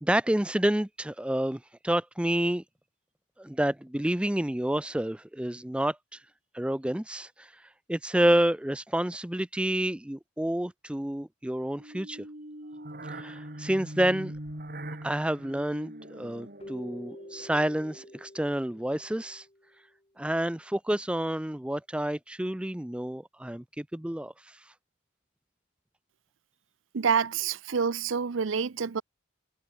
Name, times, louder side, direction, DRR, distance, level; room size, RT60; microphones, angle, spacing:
voice 1, 0.0-2.6 3.4-6.2 6.5-7.5 7.9-12.2 13.1-14.3 15.0-19.5 20.2-24.6, right 1 dB, 5° right, 0.4 m, -29 dB
sound 1, 11.8-18.2, right 1 dB, 45° right, 3.6 m, -42 dB
Keyboard (musical), 16.6-19.8, left 1 dB, 30° left, 2.0 m, -48 dB
voice 2, 26.9-29.0, right 6 dB, 75° right, 0.6 m, -27 dB
head